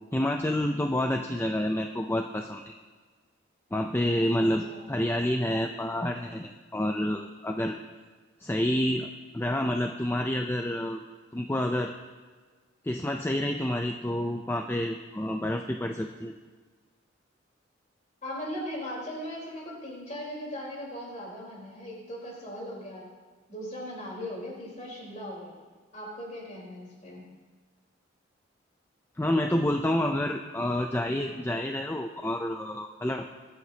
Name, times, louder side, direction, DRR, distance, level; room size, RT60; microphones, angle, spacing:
voice 1, 0.1-2.7 3.7-7.8 8.4-9.1 9.3-11.0 11.3-11.9 12.8-16.3 29.2-33.3, left 1 dB, 10° left, 3 dB, 0.4 m, -28 dB
voice 2, 4.2-4.9 18.2-23.1 23.5-25.6 25.9-27.2, equal, 35° left, -4 dB, 4.0 m, -39 dB
23.0 x 9.4 x 2.9 m, 1.5 s
head